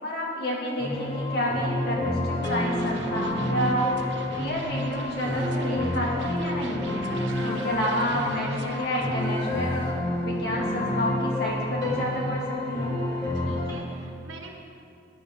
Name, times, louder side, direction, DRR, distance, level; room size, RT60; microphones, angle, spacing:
voice 1, 0.0-3.9 4.4-6.8 7.4-9.8 10.2-13.1, equal, 55° left, -3 dB, 2.2 m, -29 dB
sound 1, 0.8-13.7, left 1 dB, 20° left, 1.8 m, -29 dB
sound 2, 2.4-9.3, right 4 dB, 65° right, 0.8 m, -42 dB
sound 3, 5.2-5.6 7.3-8.5 9.2-10.0, left 1 dB, 75° left, 1.3 m, -42 dB
voice 2, 7.1-7.7 13.3-14.5, right 2 dB, 85° right, 2 dB, 1.5 m, -42 dB
15.5 x 10.5 x 3.7 m, 2.5 s
head